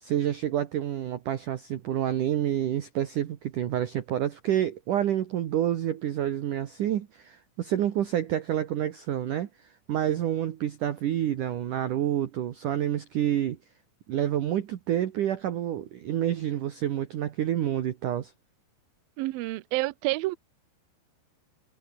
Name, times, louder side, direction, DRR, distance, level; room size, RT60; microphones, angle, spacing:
voice 1, 0.0-9.5 9.9-13.6 14.1-18.3, right 11 dB, 60° right, 2.3 m, -28 dB
voice 2, 19.2-20.4, right 19 dB, 85° right, 2.1 m, -28 dB
omnidirectional pair, 5.2 m